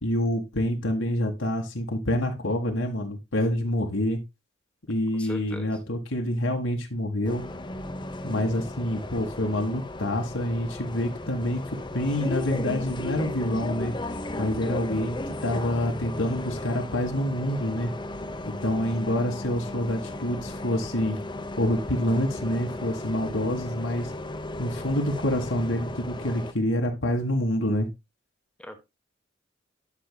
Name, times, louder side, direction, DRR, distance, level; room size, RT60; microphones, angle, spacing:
voice 1, 0.0-4.2 4.9-7.5 8.2-14.0 14.4-17.9 18.5-21.2 21.6-24.1 24.6-27.9, left 1 dB, 85° left, 1.8 m, -27 dB
voice 2, 5.2-5.7 28.6-28.8, equal, 5° left, 1.1 m, -39 dB
Bus, 7.2-26.5, left 1 dB, 25° left, 0.9 m, -35 dB
11.5 x 6.5 x 2.3 m
head